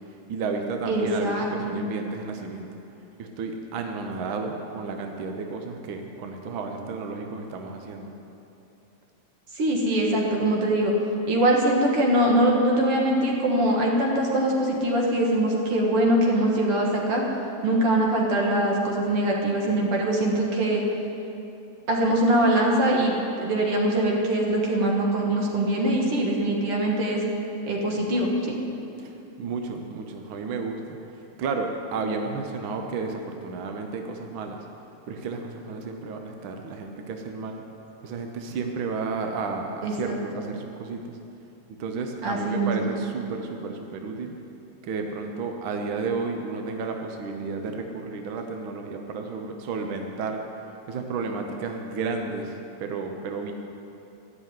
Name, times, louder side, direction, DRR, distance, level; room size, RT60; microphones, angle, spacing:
voice 1, 0.3-2.7 3.2-8.1 29.0-30.8 31.1-34.6 35.1-41.2 41.8-44.3 44.8-50.4 50.9-53.5, right 4 dB, 70° right, 3 dB, 1.2 m, -32 dB
voice 2, 0.9-1.8 9.5-10.9 11.3-17.2 17.6-20.8 21.9-27.2 27.7-28.3 39.8-40.2 42.2-42.9, right 1 dB, 55° right, -1 dB, 2.4 m, -23 dB
13.0 x 6.5 x 9.2 m, 2.9 s
omnidirectional pair, 3.3 m